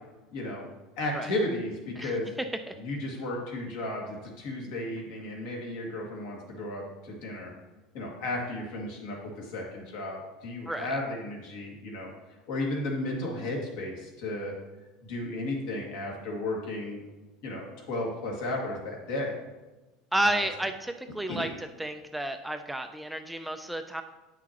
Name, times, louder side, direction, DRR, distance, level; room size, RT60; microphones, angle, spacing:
voice 1, 0.3-0.6 1.0-2.3 2.8-7.5 7.9-12.1 12.5-14.5 15.0-17.1 17.4-19.4 20.3-20.5 21.3-21.5, left 1 dB, 70° left, -1 dB, 2.0 m, -34 dB
voice 2, 10.7-11.0 20.1-24.0, right 1 dB, 5° right, 6 dB, 0.3 m, -31 dB
9.2 x 6.1 x 2.9 m, 1.1 s
supercardioid pair, 150°, 0 cm